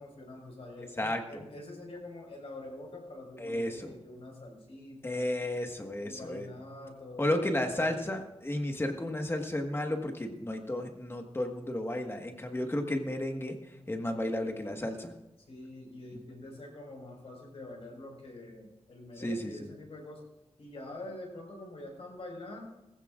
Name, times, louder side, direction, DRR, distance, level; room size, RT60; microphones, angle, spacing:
voice 1, 0.0-5.2 6.0-7.4 7.8-8.1 15.5-20.2 20.6-22.7, left 2 dB, 70° left, 0 dB, 4.8 m, -46 dB
voice 2, 0.8-1.4 3.4-4.0 5.0-6.5 7.2-13.6 13.9-15.1 16.1-16.2 19.2-19.7, left 1 dB, 20° left, 4 dB, 1.5 m, -33 dB
19.0 x 15.0 x 2.5 m, 0.95 s
wide cardioid pair, 125°, 11 cm